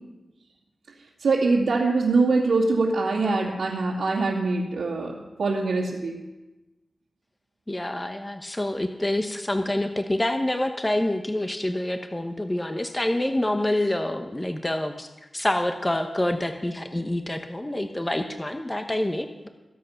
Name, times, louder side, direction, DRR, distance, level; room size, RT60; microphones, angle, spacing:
voice 1, 1.2-6.2, right 3 dB, 90° right, -7 dB, 2.5 m, -23 dB
voice 2, 7.7-15.1 15.3-19.5, left 1 dB, 20° left, 6 dB, 1.0 m, -27 dB
23.5 x 7.8 x 5.8 m, 1.1 s
wide cardioid pair, 75°, 0 cm